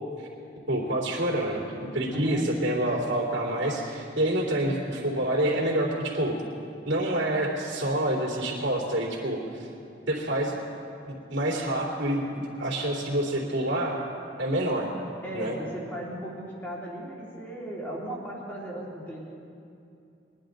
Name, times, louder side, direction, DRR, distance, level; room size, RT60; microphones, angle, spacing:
voice 1, 0.7-6.4 6.9-9.7 10.1-10.6 11.1-12.3 12.6-14.0 14.4-14.9 15.3-15.6, right 1 dB, 75° right, -4 dB, 2.9 m, -27 dB
voice 2, 2.1-2.4 15.2-19.2, right 1 dB, 10° left, -5 dB, 2.7 m, -36 dB
22.0 x 11.0 x 3.9 m, 2.6 s
head